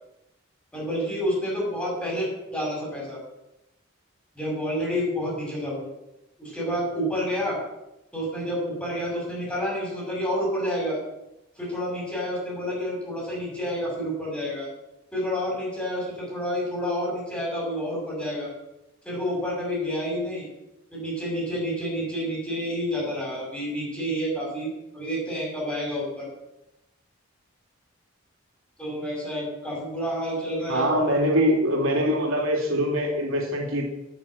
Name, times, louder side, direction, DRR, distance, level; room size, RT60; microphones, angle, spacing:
voice 1, 0.7-3.2 4.3-5.9 6.4-7.6 8.1-11.0 11.6-14.7 15.1-18.5 19.0-20.5 20.9-24.7 24.9-26.3 28.8-31.2, equal, 5° left, -4 dB, 6.5 m, -29 dB
voice 2, 30.7-33.9, equal, 85° right, 0 dB, 3.1 m, -23 dB
9.8 x 9.3 x 8.8 m, 0.91 s
head